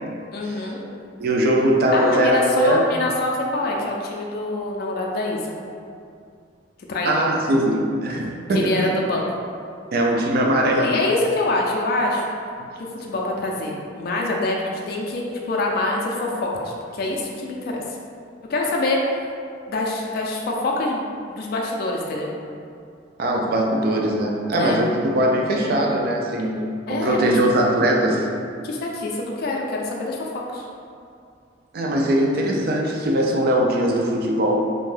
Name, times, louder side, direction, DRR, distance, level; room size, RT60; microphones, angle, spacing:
voice 1, 0.3-0.8 1.9-5.5 6.9-7.3 8.5-9.4 10.8-12.3 13.0-17.8 18.5-19.1 19.7-22.3 24.6-24.8 26.9-27.4 28.6-30.7, left 2 dB, 55° left, -1 dB, 0.3 m, -25 dB
voice 2, 1.2-2.8 7.1-8.9 9.9-11.0 23.2-26.6 26.9-28.3 31.7-34.6, right 1 dB, 55° right, 0 dB, 0.3 m, -20 dB
2.6 x 2.2 x 3.2 m, 2.4 s
head